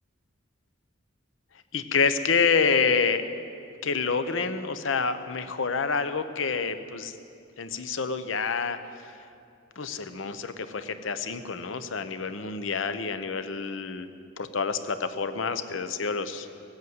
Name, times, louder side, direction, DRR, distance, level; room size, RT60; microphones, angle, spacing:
voice 1, 1.7-3.2 3.8-7.1 7.6-9.1 9.8-14.1 14.4-16.5, left 5 dB, 75° left, 10 dB, 0.8 m, -28 dB
18.5 x 8.2 x 7.9 m, 2.5 s
head